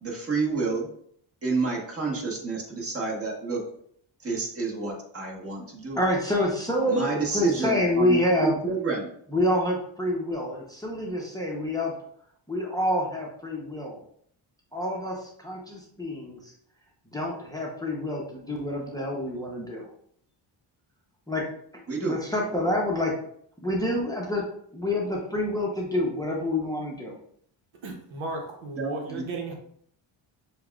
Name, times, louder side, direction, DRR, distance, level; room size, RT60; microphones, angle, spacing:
voice 1, 0.0-0.9 1.4-3.6 4.2-6.0 6.9-9.1 21.9-22.2 28.8-29.2, right 4 dB, 30° right, 1.3 m, -29 dB
voice 2, 6.0-8.6 9.3-11.9 12.5-14.0 14.7-16.5 17.1-19.9 21.3-21.4 22.1-23.1 23.6-24.4 24.7-27.1, left 1 dB, 10° left, 0.7 m, -27 dB
voice 3, 27.8-29.5, right 2 dB, 70° right, 1.0 m, -35 dB
6.7 x 2.3 x 2.3 m
cardioid pair, 100°, 49 cm